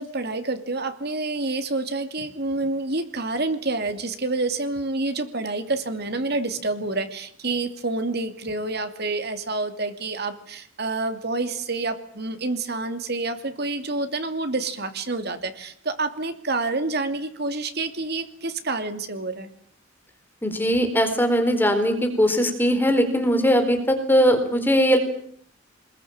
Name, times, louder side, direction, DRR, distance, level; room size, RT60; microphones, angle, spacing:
voice 1, 0.0-19.5, right 3 dB, 55° right, 8 dB, 2.8 m, -28 dB
voice 2, 20.4-25.0, equal, 10° left, 6 dB, 4.3 m, -20 dB
25.0 x 21.5 x 8.8 m, 0.63 s
head